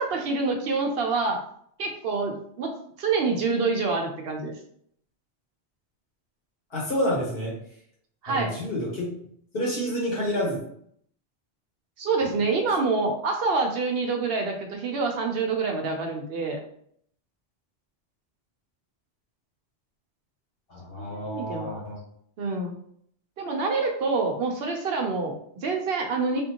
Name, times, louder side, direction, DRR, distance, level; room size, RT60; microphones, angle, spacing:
voice 1, 0.0-1.4 1.8-2.7 3.0-4.5 8.2-8.5 12.0-16.6 20.9-21.8 22.4-22.8 23.4-26.4, right 4 dB, 65° right, 2 dB, 0.8 m, -27 dB
voice 2, 6.7-7.6 8.3-9.1 9.5-10.6 12.2-12.4 20.7-22.0, equal, 60° left, -4 dB, 1.4 m, -29 dB
3.5 x 2.6 x 2.8 m, 0.65 s
omnidirectional pair, 1.1 m